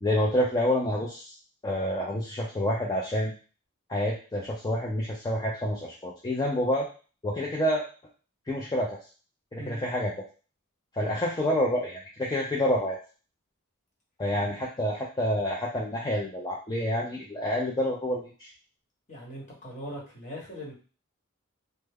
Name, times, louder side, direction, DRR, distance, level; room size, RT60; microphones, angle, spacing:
voice 1, 0.0-1.3 1.6-3.3 3.9-6.9 7.2-7.8 8.5-9.0 9.5-10.1 10.9-13.0 14.2-18.5, left 1 dB, 20° left, -3 dB, 0.4 m, -28 dB
voice 2, 19.1-20.7, equal, 35° left, -3 dB, 1.1 m, -40 dB
3.2 x 2.1 x 3.4 m, 0.37 s
head